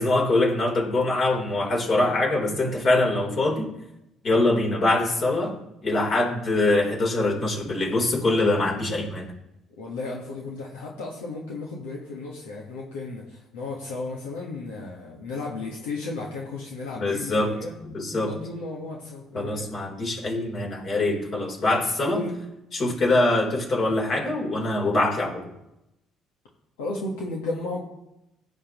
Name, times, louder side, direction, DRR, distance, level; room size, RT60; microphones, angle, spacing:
voice 1, 0.0-3.7 4.2-9.3 17.0-17.5 17.8-18.3 19.3-22.2 22.7-25.4, left 2 dB, 50° left, 0 dB, 4.1 m, -23 dB
voice 2, 9.8-17.7 18.1-19.7 22.1-22.3 26.8-27.8, left 3 dB, 85° left, -2 dB, 1.6 m, -34 dB
16.5 x 8.0 x 3.1 m, 0.87 s
hypercardioid pair, 60°, 0 cm